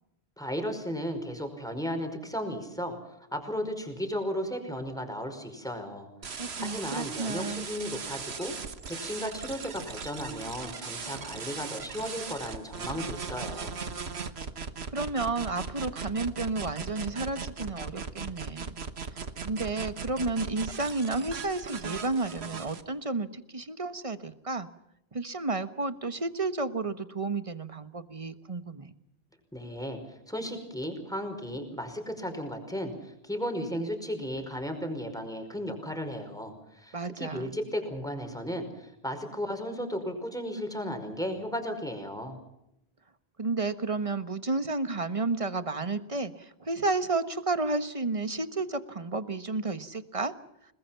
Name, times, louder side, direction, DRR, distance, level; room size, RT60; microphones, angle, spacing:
voice 1, 0.4-3.0 3.3-8.5 8.9-13.8 29.5-42.4, equal, 5° left, 5 dB, 5.2 m, -35 dB
sound 1, 6.2-22.8, right 5 dB, 85° right, 1.6 m, -38 dB
voice 2, 6.4-7.7 14.9-18.8 19.1-24.7 25.1-28.9 36.9-37.5 43.4-50.3, right 3 dB, 35° right, 11 dB, 1.4 m, -32 dB
29.5 x 20.5 x 5.9 m, 0.84 s
omnidirectional pair, 1.1 m